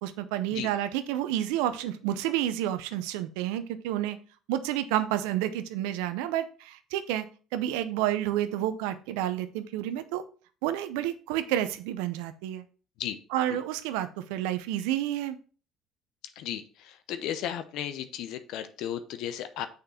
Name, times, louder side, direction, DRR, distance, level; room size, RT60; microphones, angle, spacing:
voice 1, 0.0-4.2 4.5-7.3 7.5-10.2 10.6-12.6 13.3-15.4, right 12 dB, 80° right, 12 dB, 0.6 m, -30 dB
voice 2, 17.1-19.7, left 10 dB, 70° left, 10 dB, 0.6 m, -34 dB
6.7 x 5.2 x 4.2 m, 0.37 s
hypercardioid pair, 60°, 0 cm